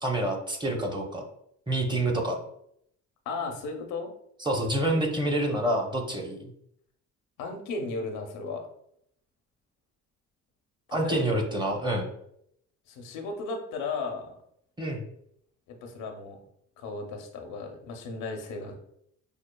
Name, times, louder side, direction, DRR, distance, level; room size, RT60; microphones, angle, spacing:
voice 1, 0.0-1.3 1.7-2.4 4.4-6.4 10.9-12.1 14.8-15.0, right 1 dB, 15° right, 2 dB, 0.7 m, -27 dB
voice 2, 3.3-4.1 7.4-8.6 11.0-11.4 12.9-14.3 15.7-16.4 16.8-18.8, left 3 dB, 90° left, 4 dB, 0.7 m, -35 dB
5.3 x 2.4 x 2.2 m, 0.73 s
cardioid pair, 90°, 30 cm